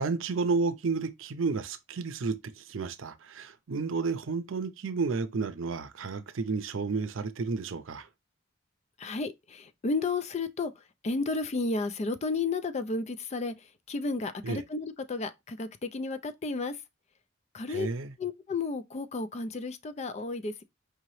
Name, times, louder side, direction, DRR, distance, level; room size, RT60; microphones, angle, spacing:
voice 1, 0.0-8.1 14.4-14.6 17.7-18.1, right 4 dB, 80° right, 0.5 m, -31 dB
voice 2, 9.0-16.8 17.5-17.9 18.2-20.6, left 3 dB, 35° left, 0.4 m, -32 dB
4.8 x 2.9 x 3.1 m
head